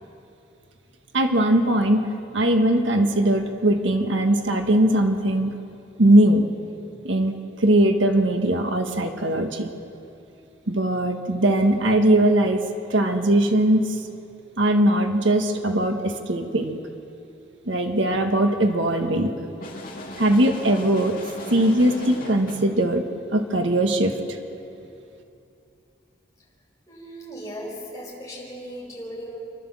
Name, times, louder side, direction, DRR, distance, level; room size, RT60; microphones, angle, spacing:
voice 1, 1.1-2.0 2.3-5.5 6.0-6.4 7.0-9.7 10.7-12.6 12.9-13.8 14.6-16.8 17.7-19.3 20.2-21.2 21.5-23.0 23.3-24.4, right 1 dB, 75° right, 5 dB, 1.5 m, -20 dB
sound 1, 19.6-22.8, left 1 dB, 45° left, 2.5 m, -37 dB
voice 2, 26.9-29.4, equal, 15° left, -4 dB, 5.3 m, -37 dB
29.0 x 12.0 x 7.4 m, 2.7 s
head